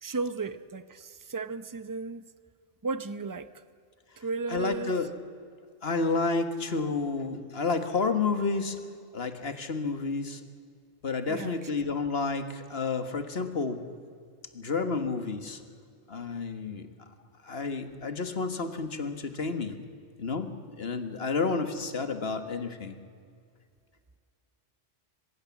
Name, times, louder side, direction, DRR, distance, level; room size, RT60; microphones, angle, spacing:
voice 1, 0.0-2.2 2.8-3.6 4.2-5.0 11.3-11.7, right 3 dB, 20° right, 13 dB, 0.7 m, -34 dB
voice 2, 4.5-5.1 5.8-8.8 9.1-10.4 11.0-13.8 14.5-15.6 16.1-16.9 17.4-19.7 20.2-20.5 20.8-22.9, left 4 dB, 55° left, 8 dB, 1.8 m, -30 dB
23.5 x 22.0 x 7.3 m, 2.2 s
omnidirectional pair, 1.2 m